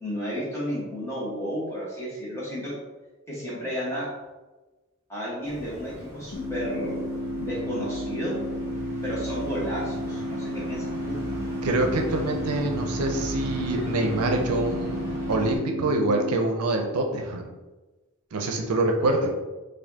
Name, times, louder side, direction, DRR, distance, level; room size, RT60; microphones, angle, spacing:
voice 1, 0.0-2.7 3.3-4.1 5.1-7.0 7.3-8.4 9.0-11.2, equal, 15° left, -7 dB, 1.3 m, -32 dB
sound 1, 5.4-15.6, equal, 15° right, 1.0 m, -38 dB
sound 2, 6.3-16.3, equal, 85° left, 1.0 m, -32 dB
voice 2, 11.6-17.5 18.3-19.3, right 2 dB, 85° right, 3 dB, 0.5 m, -25 dB
4.2 x 2.6 x 2.8 m, 1.2 s
head